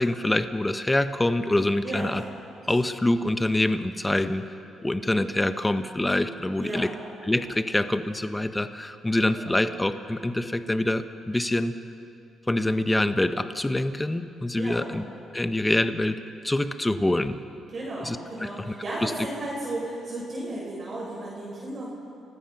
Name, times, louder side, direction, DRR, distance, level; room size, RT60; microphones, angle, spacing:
voice 1, 0.0-2.2 2.7-4.5 4.8-6.9 7.2-11.8 12.5-15.0 15.3-16.2 16.4-17.4 18.0-18.7 19.0-19.1, left 1 dB, 10° left, 10 dB, 1.0 m, -25 dB
voice 2, 6.6-6.9 9.3-9.6 14.6-14.9 17.7-21.9, right 2 dB, 40° right, -6 dB, 6.8 m, -34 dB
29.5 x 16.5 x 6.0 m, 2.6 s
cardioid pair, 90°, 0 cm